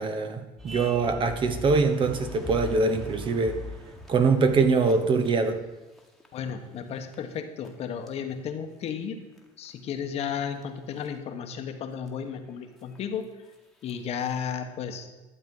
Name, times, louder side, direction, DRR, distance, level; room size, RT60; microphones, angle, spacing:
voice 1, 0.0-3.6 4.1-5.6, right 4 dB, 35° right, 8 dB, 1.1 m, -23 dB
sound 1, 0.6-5.6 6.0-6.5 6.8-7.2 7.6-7.7 8.1-8.2 9.4-9.9 10.6-10.7 10.9-11.1 12.1-12.2 12.3-12.4 12.8-13.0 13.9-14.0 14.2-14.5, left 3 dB, ahead, 1.6 m, -41 dB
voice 2, 6.3-9.2 9.6-13.3 13.8-15.1, left 7 dB, 50° left, 7 dB, 1.2 m, -33 dB
12.5 x 7.4 x 5.5 m, 1.1 s
supercardioid pair, 115°, 14 cm